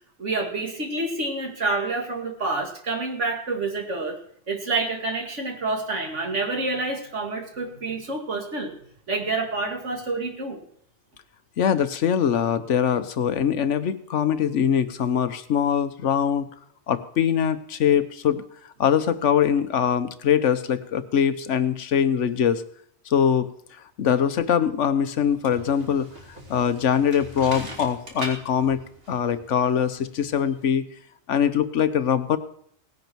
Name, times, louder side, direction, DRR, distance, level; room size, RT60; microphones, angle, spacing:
voice 1, 0.2-4.2 4.5-8.7 9.1-10.6, right 3 dB, 75° right, 1 dB, 2.7 m, -28 dB
voice 2, 11.6-16.5 16.9-18.4 18.8-22.6 23.1-23.5 24.0-26.1 26.5-28.8 29.1-30.8 31.3-32.4, left 8 dB, 80° left, 12 dB, 1.2 m, -22 dB
sound 1, 25.2-30.7, equal, 55° right, 2.9 m, -41 dB
18.0 x 10.5 x 4.6 m, 0.66 s
omnidirectional pair, 1.2 m